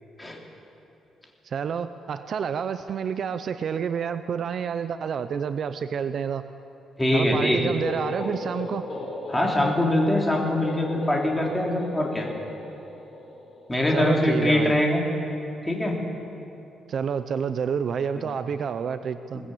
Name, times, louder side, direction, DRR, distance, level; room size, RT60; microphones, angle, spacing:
voice 1, 1.4-6.4 7.1-8.8 13.9-14.7 16.9-19.4, right 7 dB, 45° right, 11 dB, 0.6 m, -29 dB
voice 2, 7.0-7.6 9.3-12.3 13.7-15.0 15.7-16.0 19.3-19.5, left 1 dB, 10° left, -1 dB, 3.2 m, -23 dB
sound 1, 7.5-15.2, left 2 dB, 30° left, 5.6 m, -37 dB
21.5 x 19.0 x 8.6 m, 2.9 s
cardioid pair, 155°, 0 cm